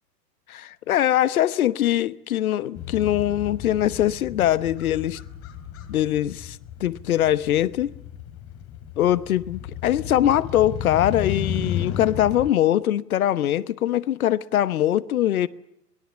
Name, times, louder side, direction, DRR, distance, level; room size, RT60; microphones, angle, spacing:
voice 1, 0.5-5.2 5.9-7.9 9.0-15.5, left 12 dB, 60° left, 1.1 m, -22 dB
Motorcycle, 2.7-12.5, left 9 dB, 30° left, 2.8 m, -34 dB
25.0 x 21.0 x 7.1 m
figure-of-eight pair, 105°, 48 cm